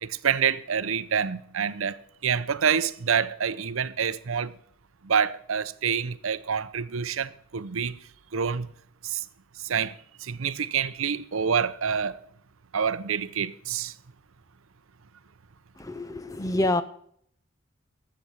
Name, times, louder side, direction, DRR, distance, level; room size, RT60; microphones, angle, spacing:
voice 1, 0.0-4.5 5.0-8.0 8.3-8.7 9.0-9.2 9.6-12.2 12.7-13.9, right 7 dB, 90° right, 0.7 m, -27 dB
voice 2, 15.8-16.8, left 1 dB, 15° left, 0.5 m, -27 dB
13.0 x 7.8 x 7.0 m
head